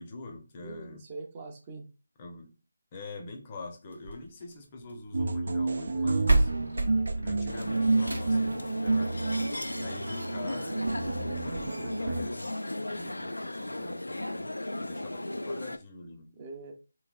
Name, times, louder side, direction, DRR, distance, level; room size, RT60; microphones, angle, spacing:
voice 1, 0.0-1.0 2.2-2.5 2.9-6.5 7.2-9.3 9.8-12.5 12.9-16.3, left 2 dB, 25° left, 0.7 m, -44 dB
voice 2, 0.6-1.9 5.9-6.4 16.3-16.7, right 3 dB, 25° right, 0.7 m, -43 dB
sound 1, 3.9-5.1 5.9-6.0 6.3-8.5 9.9-10.0 10.5-10.6 10.8-10.9 11.5-11.6, right 2 dB, 85° right, 0.9 m, -29 dB
sound 2, 5.1-12.2, right 3 dB, 65° right, 0.6 m, -30 dB
sound 3, 7.5-15.8, left 1 dB, 90° left, 0.4 m, -36 dB
3.4 x 3.1 x 2.3 m
figure-of-eight pair, 160°, 0 cm